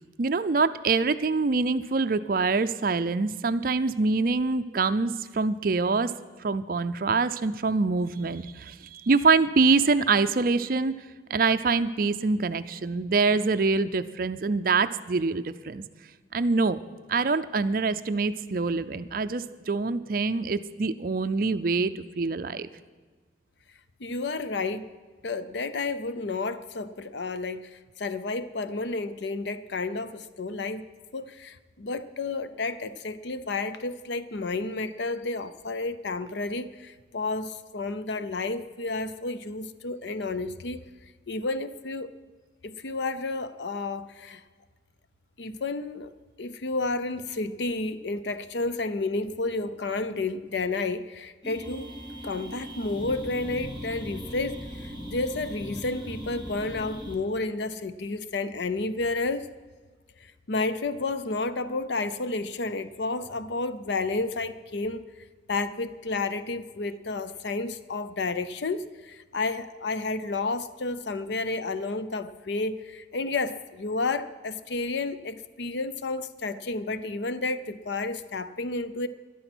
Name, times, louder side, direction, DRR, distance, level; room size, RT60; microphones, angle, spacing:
voice 1, 0.2-6.1 6.4-10.9 11.3-15.9 16.3-16.8 17.1-22.7, right 4 dB, 50° right, 12 dB, 0.5 m, -25 dB
voice 2, 24.0-24.9 25.2-30.9 31.1-40.8 41.3-42.1 42.6-44.4 45.4-46.1 46.4-51.9 52.2-59.5 60.2-65.0 65.5-79.1, left 3 dB, 70° left, 13 dB, 0.6 m, -31 dB
sound 1, 51.4-57.2, equal, 25° left, 2.4 m, -39 dB
13.0 x 11.5 x 6.1 m, 1.4 s
head